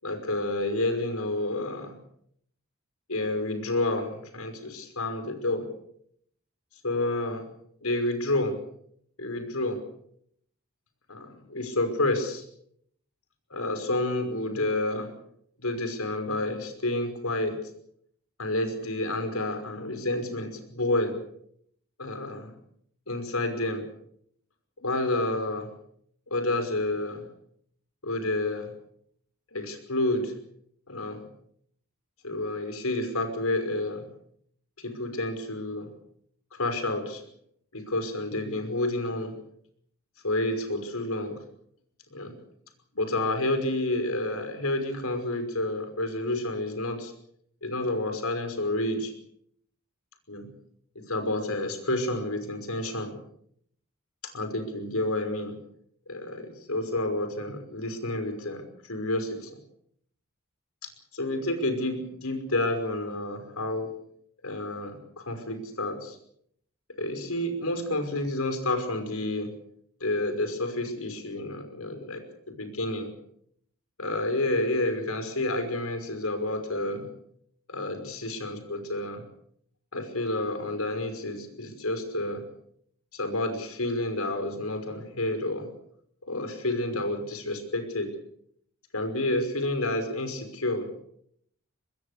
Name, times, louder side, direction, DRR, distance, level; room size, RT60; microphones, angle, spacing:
voice 1, 0.0-2.0 3.1-5.7 6.8-7.5 7.8-8.6 9.2-9.8 11.1-12.4 13.5-15.1 15.6-17.6 18.4-21.2 22.0-22.5 23.1-23.8 24.8-25.7 26.3-27.3 28.0-28.7 29.5-30.3 30.9-31.2 32.2-34.1 34.8-35.9 36.5-37.2 37.7-39.4 40.2-41.4 42.1-42.4 43.0-47.1 47.6-49.1 50.3-50.5 51.0-53.1 54.2-55.5 56.1-59.6 60.8-63.9 64.4-66.2 67.0-69.5 70.0-73.1 74.0-77.1 77.7-79.2 79.9-82.5 83.1-85.7 86.2-88.2 88.9-90.9, left 2 dB, 80° left, 7 dB, 5.6 m, -29 dB
24.5 x 21.0 x 6.8 m, 0.69 s
head